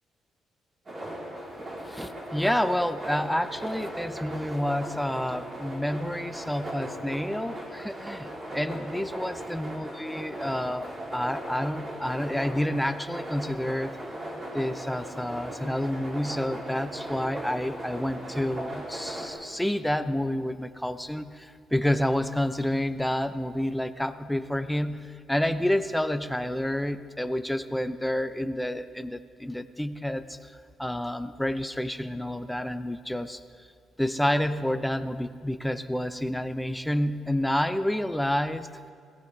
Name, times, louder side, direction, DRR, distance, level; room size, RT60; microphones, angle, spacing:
sound 1, 0.9-19.3, right 1 dB, 35° right, 3.6 m, -38 dB
voice 1, 1.9-14.0 14.5-30.5 30.8-33.4 34.0-38.9, left 1 dB, 5° left, 11 dB, 0.6 m, -29 dB
22.0 x 17.0 x 3.3 m, 2.2 s
cardioid pair, 90°, 0 cm